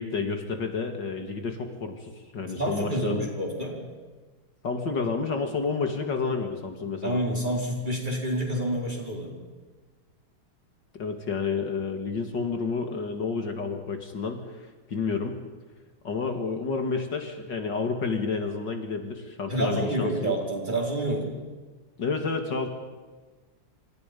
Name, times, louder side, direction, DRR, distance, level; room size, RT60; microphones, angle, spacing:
voice 1, 0.0-3.3 4.6-7.2 10.9-15.4 16.0-20.3 22.0-22.7, left 4 dB, 60° left, 5 dB, 2.7 m, -30 dB
voice 2, 2.6-3.8 7.0-9.4 19.5-21.3, right 1 dB, 20° right, -1 dB, 5.0 m, -28 dB
28.0 x 27.5 x 5.4 m, 1.3 s
omnidirectional pair, 2.2 m